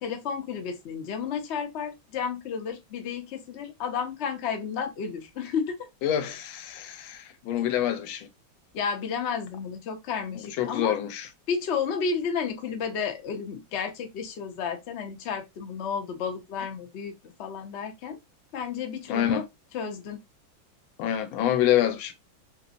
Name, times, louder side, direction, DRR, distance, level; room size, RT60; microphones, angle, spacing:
voice 1, 0.0-5.9 8.7-10.9 11.5-18.2 18.5-19.5 19.7-20.2, left 6 dB, 70° left, 0.6 m, -32 dB
voice 2, 6.0-8.3 10.3-11.3 19.1-19.4 21.0-22.1, left 11 dB, 85° left, 1.4 m, -26 dB
3.2 x 3.0 x 2.5 m
omnidirectional pair, 2.2 m